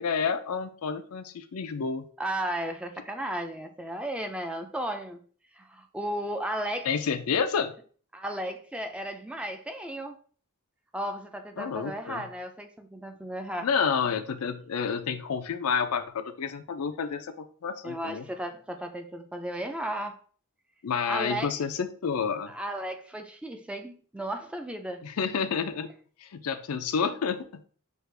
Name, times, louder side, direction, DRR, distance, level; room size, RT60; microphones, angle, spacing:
voice 1, 0.0-2.1 6.9-7.7 11.6-12.2 13.6-18.2 20.8-22.5 25.0-25.9 26.2-27.6, left 6 dB, 75° left, 0.5 m, -29 dB
voice 2, 2.2-5.2 5.5-6.9 8.1-10.2 10.9-13.7 17.8-20.2 21.1-21.5 22.5-25.0, right 1 dB, 5° right, 0.4 m, -34 dB
6.2 x 2.4 x 3.3 m
head